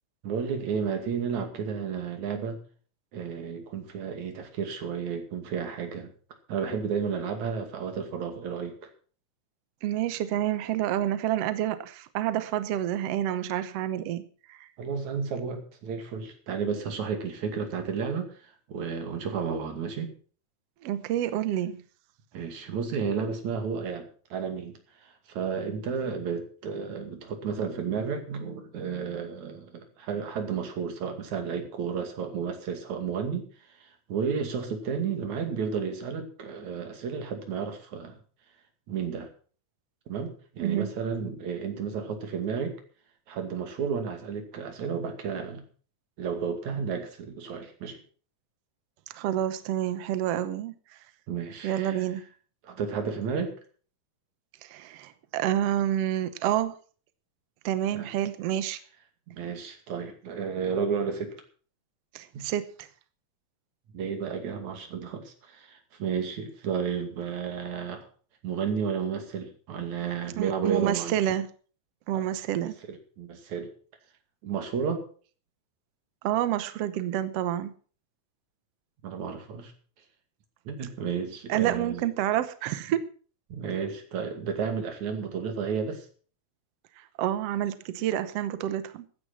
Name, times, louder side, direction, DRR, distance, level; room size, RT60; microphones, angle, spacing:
voice 1, 0.2-2.6 3.1-6.1 6.5-8.9 14.8-20.1 22.3-24.7 25.0-33.5 33.8-38.2 38.9-39.3 40.1-42.8 43.3-45.6 46.2-48.0 51.3-52.0 52.6-53.5 57.9-58.1 59.3-61.4 62.3-62.4 63.9-68.1 68.4-71.2 72.1-72.3 72.6-73.7 74.4-75.1 79.0-79.7 80.7-82.1 83.5-86.1, right 6 dB, 55° right, 6 dB, 3.5 m, -32 dB
voice 2, 9.8-14.2 14.5-14.7 20.8-21.8 40.6-40.9 49.1-50.7 51.6-52.2 54.6-56.7 57.6-58.8 62.1-62.9 70.4-71.5 72.1-72.7 76.2-77.7 81.5-83.0 87.2-89.0, right 12 dB, 80° right, 13 dB, 1.4 m, -28 dB
15.0 x 9.8 x 6.0 m, 0.41 s
omnidirectional pair, 4.1 m